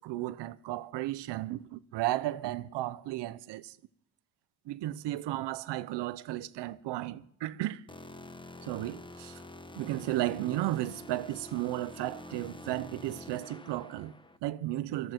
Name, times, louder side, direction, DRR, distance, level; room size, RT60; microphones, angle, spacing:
voice 1, 0.0-3.8 4.7-7.8 8.6-9.4 9.8-15.1, right 15 dB, 85° right, 0.8 m, -34 dB
sound 1, 7.9-14.4, left 2 dB, 10° left, 0.9 m, -47 dB
18.0 x 14.0 x 4.5 m
cardioid pair, 80°, 40 cm